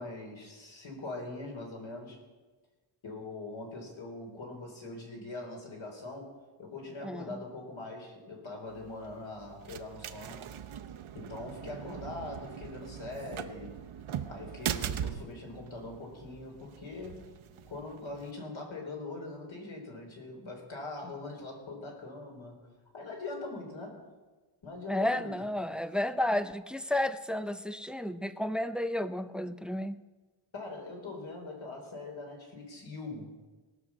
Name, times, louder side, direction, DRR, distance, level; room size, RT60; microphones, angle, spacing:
voice 1, 0.0-2.2 3.0-10.5 11.1-13.8 14.3-17.3 17.7-22.7 22.9-24.1 24.6-25.4 30.5-33.3, left 2 dB, 70° left, 0 dB, 3.7 m, -42 dB
sound 1, 8.7-18.3, right 9 dB, 75° right, 0.8 m, -41 dB
voice 2, 24.9-30.0, left 1 dB, ahead, 12 dB, 0.3 m, -32 dB
18.5 x 6.3 x 7.3 m, 1.3 s
wide cardioid pair, 115°, 49 cm